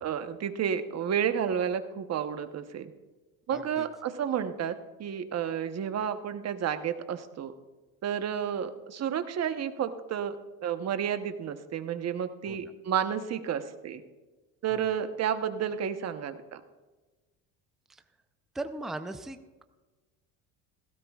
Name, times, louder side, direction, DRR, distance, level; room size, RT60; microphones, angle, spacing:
voice 1, 0.0-2.9 3.5-4.7 5.0-7.5 8.0-14.0 14.6-16.6, right 8 dB, 40° right, 9 dB, 1.0 m, -31 dB
voice 2, 3.5-3.9 12.5-12.7 14.7-14.9 18.5-19.6, right 2 dB, ahead, 8 dB, 0.6 m, -39 dB
17.5 x 16.5 x 2.4 m, 1.2 s
supercardioid pair, 110°, 40 cm